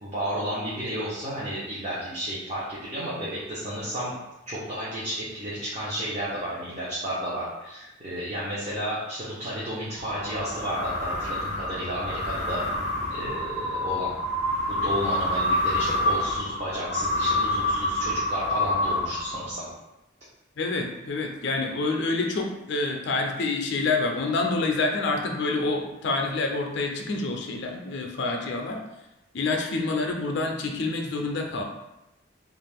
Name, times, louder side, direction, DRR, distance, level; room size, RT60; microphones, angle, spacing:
voice 1, 0.0-4.1 4.5-12.6 13.1-14.1 14.7-19.7, equal, 35° right, -8 dB, 0.6 m, -32 dB
sound 1, 10.0-19.7, left 1 dB, 65° right, 1.2 m, -27 dB
voice 2, 20.6-28.8 29.3-31.6, left 3 dB, 60° left, 2 dB, 0.4 m, -27 dB
2.5 x 2.4 x 3.4 m, 0.94 s
head